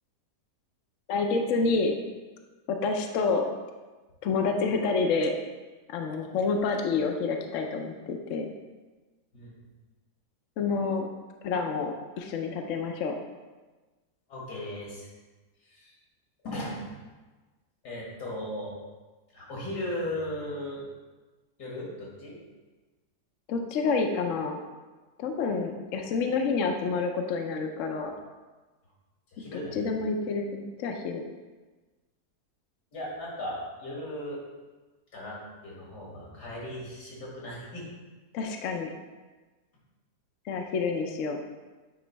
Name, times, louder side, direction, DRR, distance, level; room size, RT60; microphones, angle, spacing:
voice 1, 1.1-1.9 2.7-3.5 4.2-5.3 5.9-8.5 10.6-11.1 11.4-13.1 23.5-24.6 25.2-28.1 29.4-31.2 38.3-38.9 40.5-41.4, left 4 dB, 65° left, 3 dB, 0.9 m, -28 dB
voice 2, 14.3-15.1 15.6-16.0 16.4-16.9 17.8-18.8 19.3-20.8 21.6-22.4 29.3-29.9 32.9-34.4 35.1-37.9, left 1 dB, 85° left, -4 dB, 2.5 m, -37 dB
9.0 x 3.1 x 4.5 m, 1.3 s
omnidirectional pair, 1.7 m